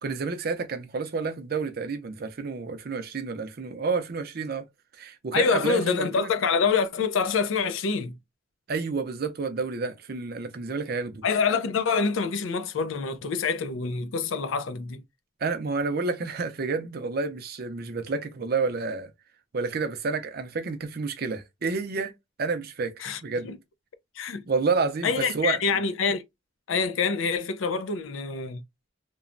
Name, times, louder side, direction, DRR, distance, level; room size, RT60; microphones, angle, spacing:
voice 1, 0.0-4.6 5.0-6.3 8.7-11.2 15.4-19.1 19.5-22.1 22.4-23.5 24.5-25.8, right 4 dB, 50° right, 0.5 m, -29 dB
voice 2, 5.3-8.2 11.2-15.0 23.0-23.6 24.2-24.4 25.0-26.2 26.7-28.6, left 5 dB, 80° left, 0.5 m, -26 dB
3.0 x 2.1 x 2.5 m
head